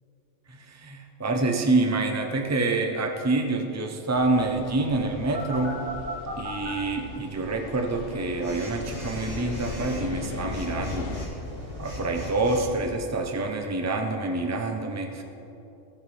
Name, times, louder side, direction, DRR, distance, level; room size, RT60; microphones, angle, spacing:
voice 1, 0.5-5.8 6.4-11.2 11.8-15.2, right 2 dB, 15° right, 3 dB, 0.7 m, -27 dB
sound 1, 4.1-11.3, left 5 dB, 55° left, 0.9 m, -39 dB
Telephone, 5.3-6.7 8.4-12.8, equal, 70° right, 2.8 m, -37 dB
17.5 x 7.8 x 3.4 m, 2.9 s
omnidirectional pair, 1.2 m